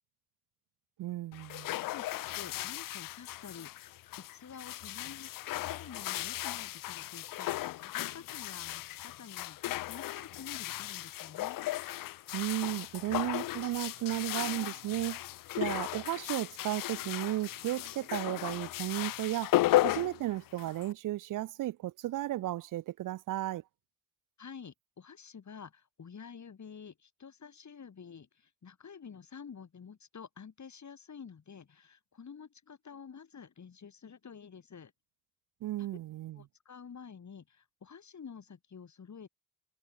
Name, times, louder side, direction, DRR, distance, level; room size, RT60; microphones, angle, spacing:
voice 1, 1.0-1.7 12.3-15.2 15.6-19.6 19.8-23.6 35.6-36.4, right 15 dB, 70° right, 0.5 m, -34 dB
sound 1, 1.3-20.9, left 16 dB, 80° left, 0.5 m, -35 dB
voice 2, 1.9-3.7 4.2-11.6 24.4-34.9 35.8-35.9 36.3-39.3, left 6 dB, 60° left, 5.4 m, -49 dB
supercardioid pair, 50°, 33 cm